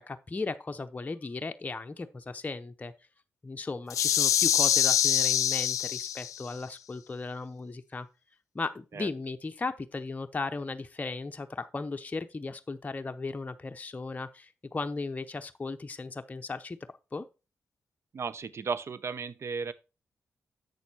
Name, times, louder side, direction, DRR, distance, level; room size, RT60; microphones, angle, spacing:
voice 1, 0.0-2.9 3.4-8.1 8.5-16.8 17.1-17.3, left 3 dB, 30° left, 0.7 m, -36 dB
sound 1, 3.9-6.5, left 10 dB, 85° left, 0.5 m, -25 dB
voice 2, 18.1-19.7, right 5 dB, 55° right, 0.8 m, -34 dB
8.2 x 6.4 x 4.3 m
cardioid pair, 70°, 5 cm